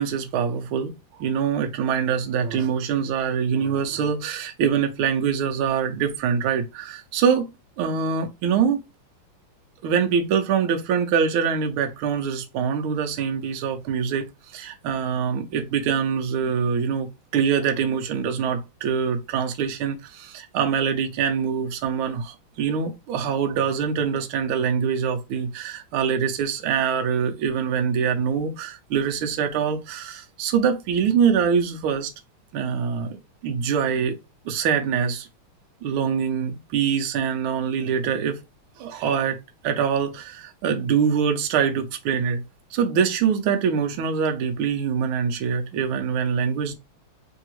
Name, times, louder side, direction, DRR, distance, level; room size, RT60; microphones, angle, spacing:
voice 1, 0.0-7.5 7.8-8.8 9.8-32.1 32.5-33.2 33.4-34.2 34.4-35.3 35.8-38.4 38.8-39.4 39.6-42.4 42.7-46.8, right 7 dB, 80° right, 1.5 m, -24 dB
4.6 x 2.7 x 3.0 m
omnidirectional pair, 2.4 m